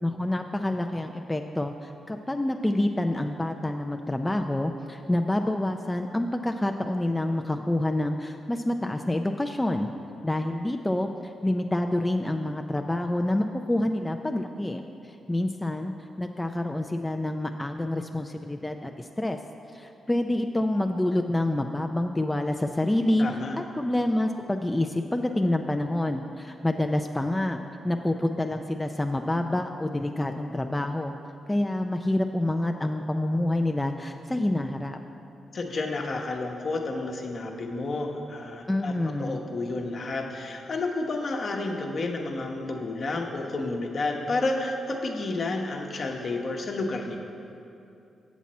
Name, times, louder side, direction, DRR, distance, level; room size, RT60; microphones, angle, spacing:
voice 1, 0.0-9.9 10.2-19.4 19.7-23.3 23.6-31.1 31.5-35.0 38.7-39.4, left 1 dB, 15° left, 4 dB, 0.4 m, -27 dB
voice 2, 23.2-23.6 35.5-47.2, left 2 dB, 55° left, 2 dB, 0.9 m, -31 dB
7.4 x 7.1 x 4.2 m, 2.7 s
cardioid pair, 60°, 0 cm